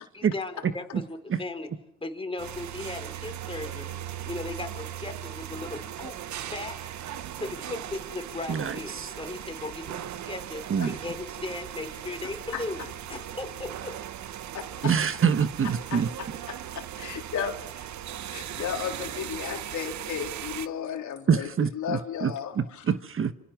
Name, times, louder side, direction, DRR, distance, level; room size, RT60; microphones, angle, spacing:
voice 1, 0.1-1.7 2.0-3.9 4.2-6.2 6.4-6.9 7.3-14.0, left 2 dB, 20° left, 4.0 m, -37 dB
sound 1, 2.4-20.7, right 11 dB, 70° right, 1.2 m, -38 dB
voice 2, 8.5-9.1 10.7-11.0 14.8-16.1 21.3-23.3, right 7 dB, 45° right, 1.2 m, -26 dB
voice 3, 12.5-12.9 14.5-14.9 15.9-17.5 18.3-22.8, left 8 dB, 75° left, 3.6 m, -34 dB
27.5 x 25.5 x 6.1 m
cardioid pair, 90°, 30 cm